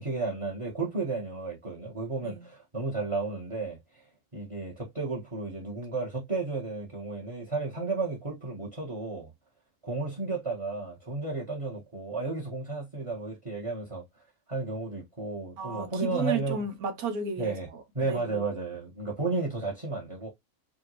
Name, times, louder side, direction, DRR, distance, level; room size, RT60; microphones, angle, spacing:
voice 1, 0.0-4.1 4.3-9.3 9.8-14.0 14.5-16.6 17.4-17.7 17.9-20.3, right 3 dB, 20° right, 1.3 m, -33 dB
voice 2, 15.6-18.5, right 4 dB, 80° right, 1.4 m, -34 dB
4.8 x 2.7 x 3.1 m
omnidirectional pair, 1.6 m